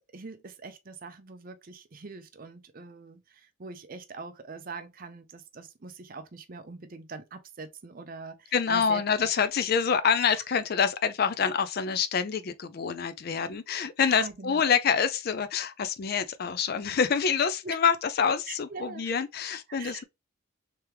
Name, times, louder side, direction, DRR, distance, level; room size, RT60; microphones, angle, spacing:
voice 1, 0.1-9.0 10.3-10.4 14.0-14.7 17.6-17.8 18.5-19.1 19.8-20.0, right 4 dB, 40° right, 0.6 m, -43 dB
voice 2, 8.5-20.0, left 6 dB, 45° left, 0.4 m, -26 dB
3.4 x 3.3 x 2.9 m
head